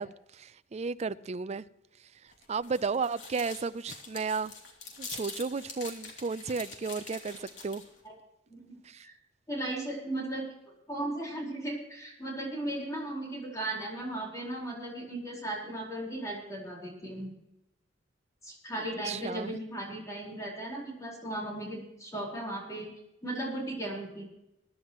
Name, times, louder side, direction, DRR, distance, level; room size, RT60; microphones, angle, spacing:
voice 1, 0.0-1.6 2.5-4.5 5.0-7.8 8.8-9.1 19.1-19.5, right 4 dB, 35° right, 0.4 m, -33 dB
sound 1, 2.3-8.0, left 4 dB, 80° left, 2.8 m, -45 dB
voice 2, 9.5-10.5 10.9-17.3 18.4-22.9 23.2-24.2, right 1 dB, 20° left, 4.6 m, -36 dB
23.0 x 11.0 x 3.0 m
head